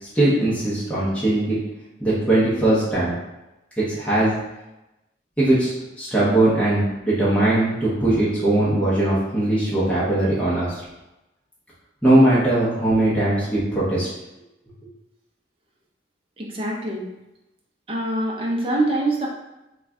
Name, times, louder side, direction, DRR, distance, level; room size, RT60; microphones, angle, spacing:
voice 1, 0.0-1.6 2.0-3.1 3.8-4.3 5.4-5.7 6.0-10.8 12.0-14.1, right 1 dB, 5° left, -10 dB, 0.7 m, -20 dB
voice 2, 16.4-17.0 17.9-19.3, right 1 dB, 30° right, -2 dB, 0.6 m, -24 dB
3.1 x 2.3 x 3.5 m, 0.95 s
head